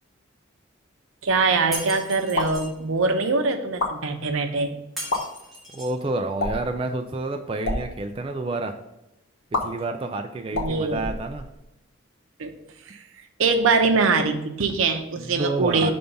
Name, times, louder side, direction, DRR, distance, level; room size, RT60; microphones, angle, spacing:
voice 1, 1.2-4.7 10.5-11.0 12.4-12.5 12.9-13.0 13.4-15.9, right 4 dB, 85° right, 6 dB, 0.6 m, -23 dB
Shatter, 1.7-2.7 5.0-6.0, equal, ahead, 1.4 m, -36 dB
sound 1, 2.3-2.6 3.6-3.9 5.0-5.2 6.4-6.7 7.5-7.8 9.5-9.6 10.5-11.7, left 2 dB, 75° left, 0.9 m, -28 dB
voice 2, 5.7-8.7 9.5-11.4 15.2-15.9, right 2 dB, 25° right, 5 dB, 0.3 m, -29 dB
5.4 x 3.4 x 5.3 m, 0.89 s
head